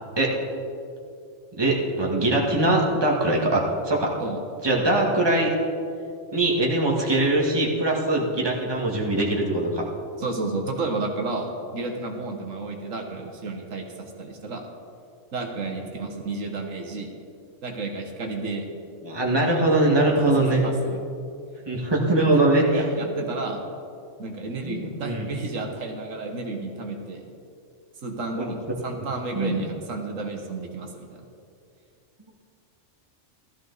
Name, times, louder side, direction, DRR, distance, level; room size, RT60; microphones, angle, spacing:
voice 1, 1.6-4.2 4.6-5.5 6.3-9.8 19.0-20.6 21.7-23.1 24.6-25.3 28.3-28.5 29.3-29.6, right 2 dB, 20° right, -2 dB, 1.8 m, -22 dB
voice 2, 10.2-14.7 15.3-17.1 17.6-18.7 20.2-21.0 22.7-23.6 24.2-27.2 28.0-28.6 28.8-31.2, right 3 dB, 80° right, 2 dB, 1.7 m, -32 dB
15.5 x 13.5 x 4.1 m, 2.5 s
omnidirectional pair, 1.3 m